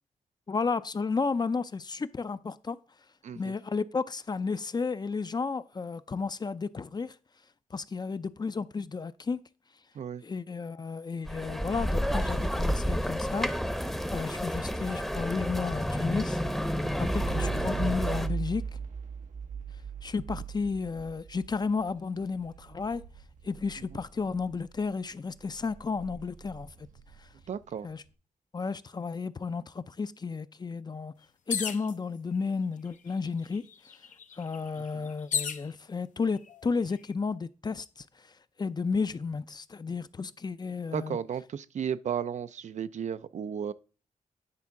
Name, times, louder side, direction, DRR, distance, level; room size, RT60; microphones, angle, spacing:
voice 1, 0.5-2.8 3.3-7.1 7.7-9.4 10.2-13.5 14.1-16.4 17.0-18.6 20.0-23.0 23.4-26.9 27.8-28.0 28.5-31.1 31.5-33.6 34.4-38.1 38.6-41.2, left 4 dB, 30° left, 0.5 m, -32 dB
sound 1, 11.3-18.3, equal, ahead, 0.8 m, -30 dB
sound 2, 16.7-24.9 25.3-27.9, right 6 dB, 80° right, 0.8 m, -39 dB
voice 2, 27.5-27.9 34.8-35.1 40.9-43.7, right 8 dB, 65° right, 0.4 m, -34 dB
sound 3, 31.5-31.9 32.9-33.0 33.3-35.7 36.4-36.9, left 7 dB, 75° left, 0.7 m, -34 dB
9.7 x 3.5 x 5.8 m
cardioid pair, 80°, 13 cm